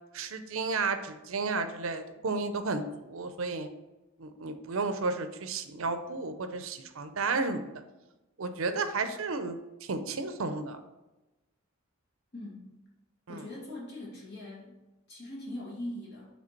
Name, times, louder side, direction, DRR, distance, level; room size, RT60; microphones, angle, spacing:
voice 1, 0.1-3.7 4.2-7.6 8.4-10.8 13.3-13.4, right 3 dB, 65° right, 9 dB, 0.6 m, -32 dB
voice 2, 12.3-12.7 13.3-14.8 15.1-16.3, left 1 dB, 50° left, -4 dB, 2.1 m, -41 dB
7.6 x 3.3 x 4.5 m, 1.0 s
head